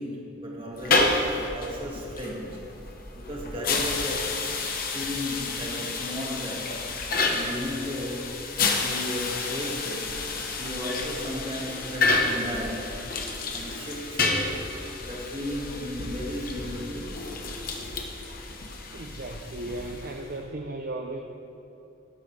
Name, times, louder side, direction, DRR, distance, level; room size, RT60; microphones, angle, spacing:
voice 1, 0.0-2.6 3.1-4.6 4.9-6.8 7.3-8.4 8.8-10.2 10.6-13.0 13.5-14.7 15.0-17.2, left 1 dB, 25° right, -3 dB, 1.8 m, -35 dB
sound 1, 0.7-20.3, left 3 dB, 45° left, 1.0 m, -30 dB
voice 2, 18.9-21.2, right 2 dB, 45° right, 2 dB, 0.5 m, -36 dB
12.0 x 12.0 x 3.3 m, 2.9 s
head